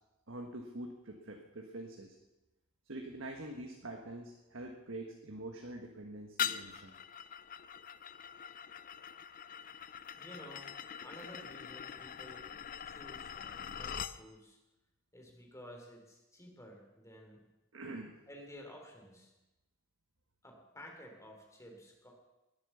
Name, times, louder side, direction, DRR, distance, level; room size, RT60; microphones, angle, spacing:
voice 1, 0.3-2.2 2.9-6.9 17.7-18.1, right 1 dB, 65° right, 2 dB, 1.6 m, -45 dB
sound 1, 6.4-14.2, left 8 dB, 45° left, 0.5 m, -42 dB
voice 2, 10.2-10.7 11.0-12.5 12.8-14.6 15.1-17.5 18.3-19.3 20.4-22.1, equal, 15° left, 2 dB, 3.4 m, -53 dB
20.5 x 8.8 x 7.0 m, 1.0 s
head